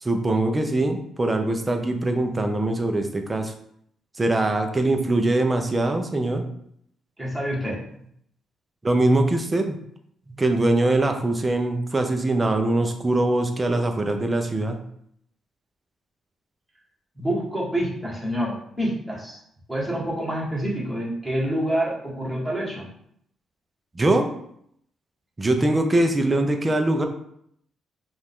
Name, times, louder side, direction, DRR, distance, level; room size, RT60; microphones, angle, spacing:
voice 1, 0.0-3.5 4.2-6.4 8.8-9.8 10.3-14.8 23.9-24.3 25.4-27.0, right 2 dB, 20° right, 5 dB, 0.7 m, -22 dB
voice 2, 7.2-7.8 17.2-19.4 19.7-22.9, right 1 dB, 5° right, -5 dB, 1.9 m, -27 dB
5.2 x 2.6 x 3.7 m, 0.69 s
cardioid pair, 90°, 0 cm